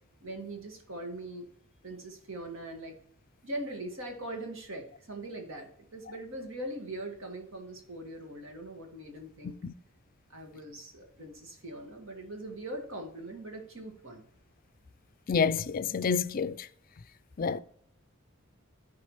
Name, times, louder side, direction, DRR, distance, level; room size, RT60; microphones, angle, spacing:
voice 1, 0.2-1.5 1.8-3.0 3.4-9.6 10.3-14.3, right 1 dB, 65° right, 1.9 m, -41 dB
voice 2, 15.3-16.7 17.4-17.6, left 5 dB, 45° left, 0.4 m, -28 dB
13.5 x 5.0 x 3.2 m
head